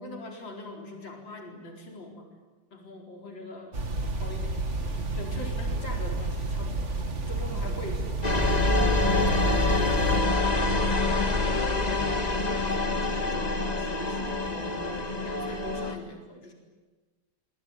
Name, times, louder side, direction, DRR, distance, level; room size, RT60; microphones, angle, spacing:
voice 1, 0.0-2.3 2.7-3.8 4.1-12.1 12.6-16.5, left 2 dB, 80° left, 2 dB, 5.1 m, -42 dB
sound 1, 3.7-10.2, right 2 dB, 40° right, 2.4 m, -31 dB
sound 2, 8.2-15.9, left 2 dB, 20° left, 1.9 m, -26 dB
25.5 x 24.5 x 8.8 m, 1.3 s
omnidirectional pair, 2.0 m